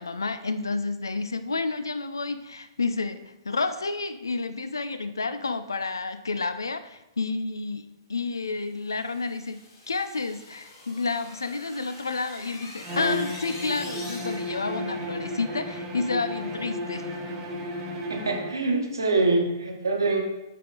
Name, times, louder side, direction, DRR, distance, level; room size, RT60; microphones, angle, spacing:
voice 1, 0.0-9.6 9.9-17.2, left 3 dB, 75° left, 11 dB, 0.4 m, -30 dB
sound 1, 8.7-14.7, left 2 dB, 50° left, 1.8 m, -44 dB
Bowed string instrument, 12.8-18.6, left 1 dB, 25° right, 1.1 m, -33 dB
voice 2, 18.1-20.2, right 3 dB, 75° right, 2 dB, 1.1 m, -24 dB
5.7 x 4.9 x 3.7 m, 0.98 s
figure-of-eight pair, 110°, 2 cm